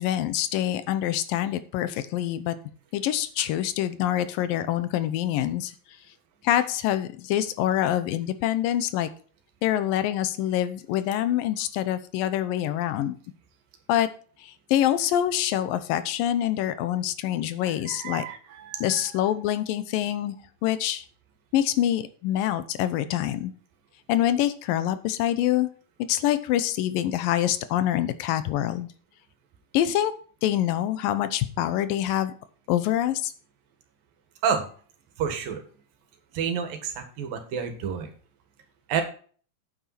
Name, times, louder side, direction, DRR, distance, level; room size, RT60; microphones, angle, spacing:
voice 1, 0.0-2.6 2.9-5.7 6.4-9.1 9.6-13.2 13.9-14.1 14.4-18.3 18.8-20.4 20.6-21.0 21.5-23.5 24.1-25.7 26.1-28.9 29.7-30.1 30.4-32.3 32.7-33.3, left 12 dB, 85° left, 12 dB, 2.6 m, -25 dB
voice 2, 17.6-19.0 34.4-34.7 35.2-35.6 36.3-38.1 38.9-39.0, right 7 dB, 85° right, 6 dB, 3.4 m, -29 dB
8.8 x 8.7 x 4.1 m, 0.43 s
omnidirectional pair, 3.9 m